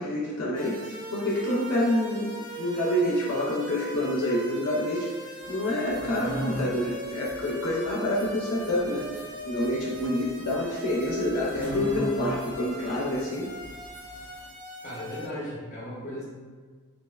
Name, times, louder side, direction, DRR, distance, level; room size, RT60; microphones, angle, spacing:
voice 1, 0.0-9.1 9.4-13.5, left 1 dB, 80° left, -4 dB, 0.4 m, -27 dB
sound 1, 0.5-15.3, right 1 dB, 40° right, 0.6 m, -41 dB
sound 2, 5.4-14.5, left 1 dB, 85° right, 1.4 m, -39 dB
voice 2, 14.8-16.2, left 1 dB, 35° left, -7 dB, 0.8 m, -36 dB
2.7 x 2.0 x 2.2 m, 1.5 s
head